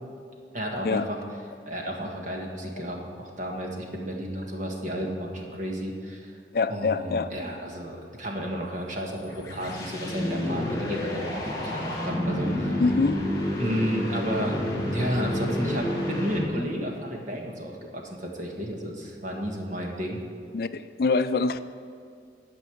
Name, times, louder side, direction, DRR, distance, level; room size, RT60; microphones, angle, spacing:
voice 1, 0.5-1.2 1.7-6.3 6.7-12.8 13.6-14.6 14.9-20.2, equal, 45° right, 0 dB, 1.6 m, -32 dB
voice 2, 6.5-7.3 12.8-13.3 20.5-21.6, left 4 dB, 55° left, 12 dB, 0.4 m, -25 dB
sound 1, 9.0-16.8, left 1 dB, 20° left, 1.7 m, -29 dB
11.5 x 5.4 x 7.8 m, 2.3 s
head